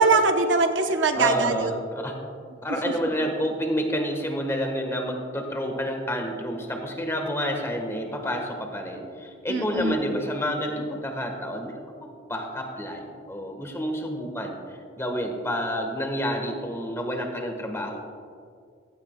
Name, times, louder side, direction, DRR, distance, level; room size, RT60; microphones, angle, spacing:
voice 1, 0.0-1.7 9.5-9.9, right 3 dB, 70° right, 6 dB, 0.9 m, -22 dB
voice 2, 1.1-2.1 2.6-18.0, equal, 15° left, 3 dB, 1.3 m, -29 dB
15.5 x 13.0 x 2.2 m, 2.3 s
head